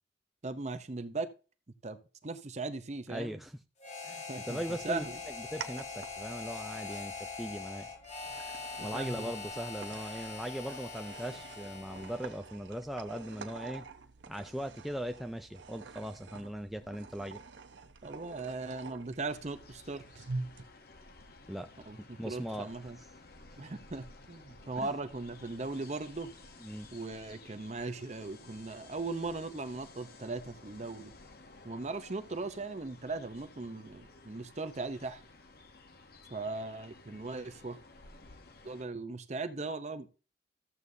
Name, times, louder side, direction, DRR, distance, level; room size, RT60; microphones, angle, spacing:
voice 1, 0.4-1.3 1.8-3.4 4.3-5.2 8.8-9.3 18.0-20.0 21.9-23.0 23.6-26.3 26.9-31.1 31.6-35.2 36.3-37.8 38.6-40.1, right 3 dB, 35° right, 0.7 m, -38 dB
voice 2, 3.1-3.6 4.0-7.1 7.4-7.9 8.8-13.8 14.3-17.4 21.5-21.7 22.2-23.1 24.8-24.9 26.6-26.9, equal, ahead, 0.3 m, -39 dB
Harmonica, 3.8-12.4, left 4 dB, 35° left, 1.7 m, -43 dB
sound 1, 4.6-20.6, right 3 dB, 70° right, 0.8 m, -47 dB
sound 2, 19.3-38.8, left 3 dB, 50° left, 1.0 m, -55 dB
14.0 x 8.0 x 2.7 m
head